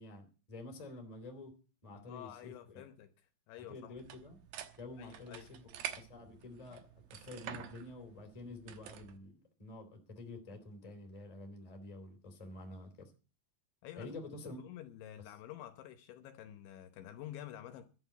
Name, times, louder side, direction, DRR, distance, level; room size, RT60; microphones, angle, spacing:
voice 1, 0.0-1.5 1.8-2.8 3.6-4.4 4.8-13.1 14.0-14.6, left 2 dB, 10° left, 2.2 m, -49 dB
voice 2, 1.9-4.0 5.0-5.5 13.8-14.2 14.5-17.9, left 12 dB, 75° left, 3.1 m, -49 dB
sound 1, 4.0-9.2, right 10 dB, 80° right, 2.0 m, -48 dB
12.5 x 8.9 x 8.0 m
omnidirectional pair, 5.8 m